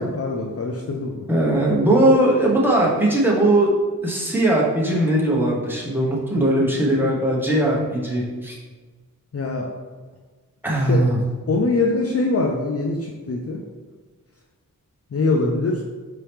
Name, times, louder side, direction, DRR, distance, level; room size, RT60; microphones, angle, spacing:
voice 1, 0.0-1.3 9.3-9.7 10.9-11.0 11.5-13.6 15.1-15.8, left 3 dB, 45° left, 0 dB, 0.5 m, -23 dB
voice 2, 1.3-3.7 4.0-8.6 10.6-11.2, right 1 dB, 5° right, -4 dB, 1.2 m, -19 dB
4.6 x 3.0 x 3.5 m, 1.4 s
wide cardioid pair, 65°, 34 cm